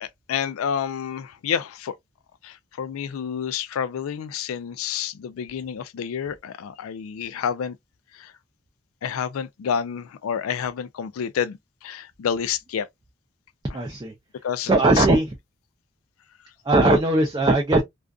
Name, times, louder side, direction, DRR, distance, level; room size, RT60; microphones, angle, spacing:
voice 1, 0.0-1.9 2.4-7.8 8.1-8.3 9.0-12.9 13.7-13.8 14.4-15.1, left 8 dB, 80° left, 0.3 m, -29 dB
voice 2, 13.7-14.1 14.6-15.3 16.6-17.8, right 2 dB, 20° right, 0.4 m, -19 dB
2.4 x 2.3 x 2.3 m
head